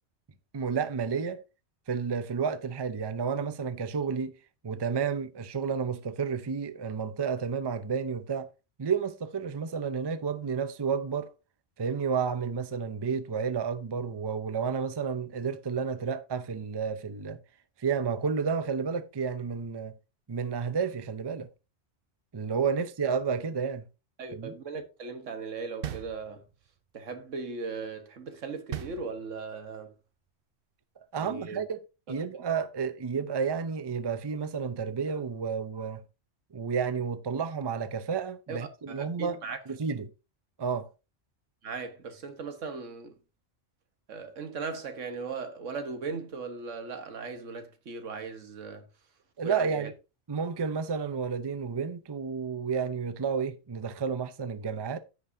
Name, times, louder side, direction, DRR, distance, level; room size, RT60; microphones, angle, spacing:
voice 1, 0.5-1.4 1.9-4.3 4.6-8.5 8.8-11.3 11.8-17.4 17.8-19.9 20.3-21.5 22.3-23.9 24.3-24.5 31.0-31.8 32.1-36.0 36.5-39.4 39.7-40.1 40.6-40.9 49.4-49.9 50.3-55.0, right 6 dB, 30° right, 0.5 m, -31 dB
voice 2, 24.2-26.4 26.9-29.9 31.1-31.6 32.1-32.2 38.5-39.6 41.6-43.2 44.1-48.9 49.4-49.9, right 4 dB, 90° right, 1.6 m, -38 dB
sound 1, 25.8-26.7 28.7-29.6, right 11 dB, 55° right, 0.8 m, -39 dB
15.5 x 5.3 x 2.7 m
omnidirectional pair, 1.2 m